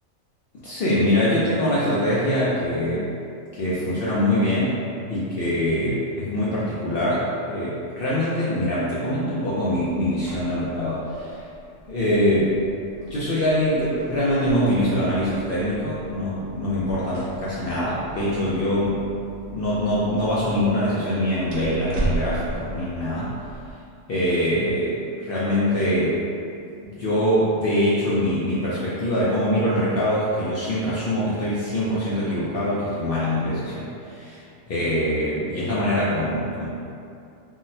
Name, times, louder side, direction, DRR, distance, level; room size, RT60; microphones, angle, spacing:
voice 1, 0.6-3.1 3.5-4.8 5.1-11.4 11.9-12.5 13.1-19.0 19.5-23.3 24.1-26.2 26.8-34.4 34.7-36.7, left 1 dB, 60° left, -9 dB, 0.6 m, -23 dB
sound 1, 9.7-23.7, right 2 dB, 75° right, 1.1 m, -37 dB
3.8 x 2.0 x 2.6 m, 2.5 s
omnidirectional pair, 1.4 m